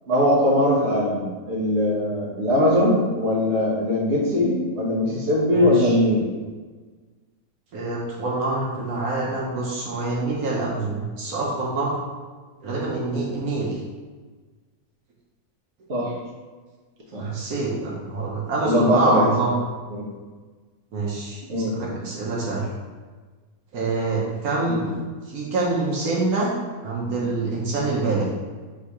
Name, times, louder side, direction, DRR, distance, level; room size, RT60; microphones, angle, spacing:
voice 1, 0.1-6.2 15.9-16.1 17.1-17.2 18.6-19.2 19.9-20.0 21.5-22.0 24.8-24.9, left 1 dB, 50° right, -5 dB, 1.2 m, -21 dB
voice 2, 5.5-6.0 7.7-12.0 12.6-13.8 17.1-19.6 20.9-22.7 23.7-24.9 25.3-26.5 26.8-28.3, right 2 dB, 80° right, -4 dB, 1.3 m, -26 dB
3.6 x 2.7 x 4.5 m, 1.4 s
omnidirectional pair, 1.6 m